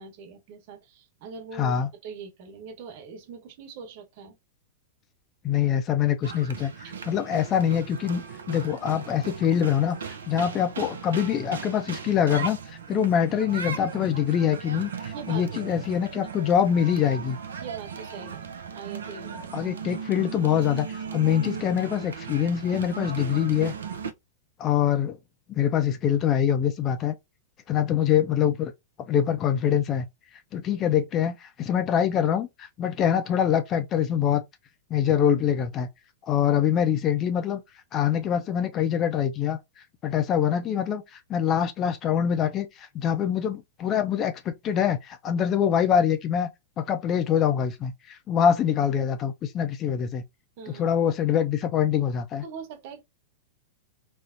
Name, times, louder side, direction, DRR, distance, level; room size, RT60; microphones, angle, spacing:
voice 1, 0.0-1.7 2.0-4.4 6.8-7.0 13.0-13.1 15.1-15.8 17.6-18.4 18.7-19.7 50.6-50.8 52.4-53.0, right 6 dB, 45° right, 1.1 m, -42 dB
voice 2, 1.6-1.9 5.4-6.7 7.1-17.4 19.5-23.7 24.6-25.2 25.5-27.1 27.7-28.7 29.1-30.1 30.5-34.4 34.9-35.9 36.3-37.6 37.9-39.6 40.0-46.5 46.8-50.2 50.7-52.4, left 9 dB, 30° left, 0.4 m, -24 dB
sound 1, 6.2-24.1, right 6 dB, 65° right, 0.4 m, -37 dB
3.8 x 2.0 x 2.5 m
figure-of-eight pair, 95°, 0 cm